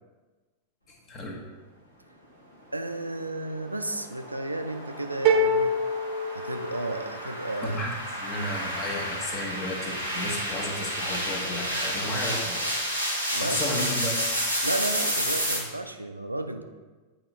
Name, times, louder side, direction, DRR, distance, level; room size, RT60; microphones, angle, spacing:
voice 1, 0.9-1.4 7.6-12.8 13.1-14.3, left 1 dB, 30° left, 1 dB, 1.2 m, -33 dB
voice 2, 2.7-5.7 6.3-7.8 13.3-13.8 14.6-16.6, right 2 dB, 85° right, 6 dB, 0.4 m, -33 dB
sound 1, 3.5-15.6, equal, 85° left, 1.4 m, -31 dB
sound 2, 5.2-7.2, right 1 dB, 45° right, 0.7 m, -25 dB
8.6 x 3.0 x 4.2 m, 1.3 s
figure-of-eight pair, 90°, 0 cm